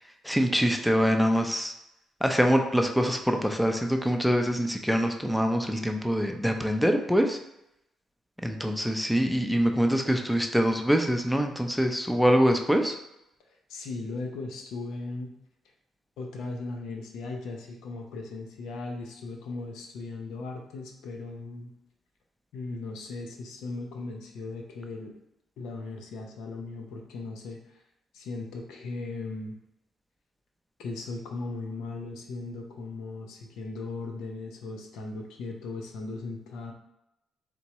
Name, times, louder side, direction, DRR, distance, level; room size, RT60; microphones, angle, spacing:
voice 1, 0.2-1.7 2.2-7.4 8.4-13.0, equal, ahead, 4 dB, 0.5 m, -24 dB
voice 2, 13.7-15.3 16.2-21.7 22.5-25.1 25.6-27.8 28.1-29.6 30.8-36.7, left 3 dB, 85° left, 2 dB, 0.7 m, -37 dB
4.1 x 3.5 x 3.0 m, 0.85 s
cardioid pair, 90°, 0 cm